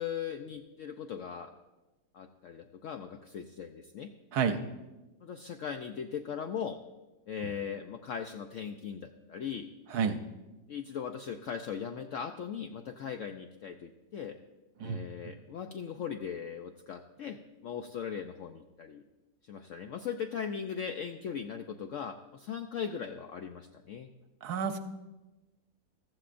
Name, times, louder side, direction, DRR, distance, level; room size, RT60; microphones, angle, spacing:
voice 1, 0.0-1.5 2.1-4.1 5.2-6.8 7.3-9.7 10.7-14.4 14.8-19.0 19.5-24.1, left 7 dB, 90° left, 6 dB, 0.6 m, -39 dB
voice 2, 9.9-10.2 14.8-15.0 24.4-24.8, right 6 dB, 70° right, 8 dB, 1.1 m, -30 dB
15.0 x 13.5 x 2.5 m, 1.1 s
omnidirectional pair, 1.9 m